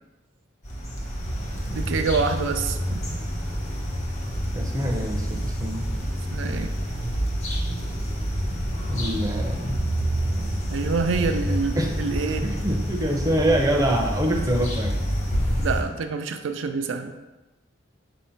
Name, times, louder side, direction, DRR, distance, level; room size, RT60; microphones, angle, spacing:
sound 1, 0.6-15.8, equal, 35° left, 1.0 m, -28 dB
voice 1, 1.7-3.1 6.3-6.7 10.7-12.4 15.6-17.1, right 4 dB, 75° right, 7 dB, 0.4 m, -26 dB
voice 2, 4.5-5.8 8.9-9.8 11.2-11.5 11.7-11.9 12.3-15.0, right 1 dB, 20° right, 2 dB, 0.6 m, -25 dB
4.2 x 2.7 x 4.3 m, 1.1 s
head